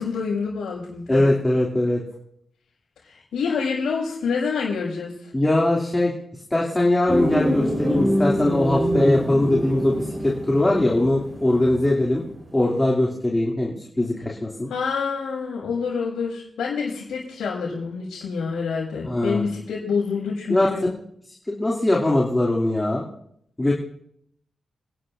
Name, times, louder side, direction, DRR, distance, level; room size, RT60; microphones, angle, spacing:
voice 1, 0.0-1.2 3.1-5.3 14.7-20.9, left 5 dB, 85° left, -8 dB, 5.6 m, -27 dB
voice 2, 1.1-2.0 5.3-6.1 6.5-12.2 12.5-14.7 19.0-19.5 20.5-20.9 21.5-23.1 23.6-23.7, left 1 dB, 20° left, -3 dB, 2.7 m, -21 dB
sound 1, 7.1-12.4 12.7-12.8, equal, 35° right, 4.3 m, -25 dB
27.0 x 11.0 x 2.6 m, 0.71 s
cardioid pair, 50°, 0 cm